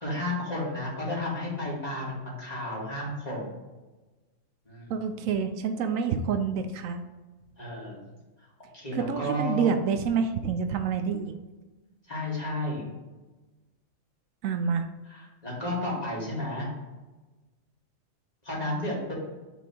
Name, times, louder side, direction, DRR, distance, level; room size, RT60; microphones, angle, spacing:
voice 1, 0.0-3.5 4.7-5.0 7.6-8.0 8.7-9.7 12.1-12.8 15.1-16.7 18.4-19.1, left 1 dB, 30° left, -5 dB, 2.0 m, -32 dB
voice 2, 4.9-7.0 8.9-11.3 14.4-14.9, right 6 dB, 80° right, 7 dB, 1.0 m, -27 dB
6.0 x 3.5 x 4.5 m, 1.2 s
omnidirectional pair, 1.4 m